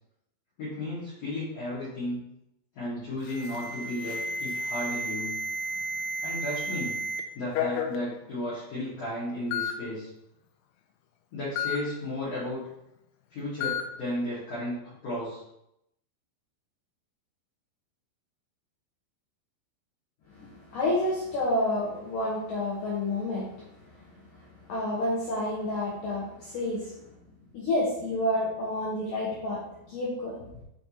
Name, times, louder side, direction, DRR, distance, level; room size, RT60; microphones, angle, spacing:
voice 1, 0.6-2.2 2.7-5.4 6.2-6.9 7.3-10.1 11.3-12.6 13.3-15.4, left 1 dB, 50° left, -11 dB, 2.2 m, -34 dB
Alarm, 3.2-7.2 7.5-8.0 8.8-8.9 9.5-9.7 11.6-11.8 13.6-13.8, left 2 dB, 85° left, 3.0 m, -32 dB
voice 2, 20.3-23.5 23.9-24.4 24.7-27.0 27.5-30.4, left 1 dB, 70° left, -6 dB, 2.1 m, -29 dB
6.4 x 5.2 x 2.9 m, 0.82 s
omnidirectional pair, 5.4 m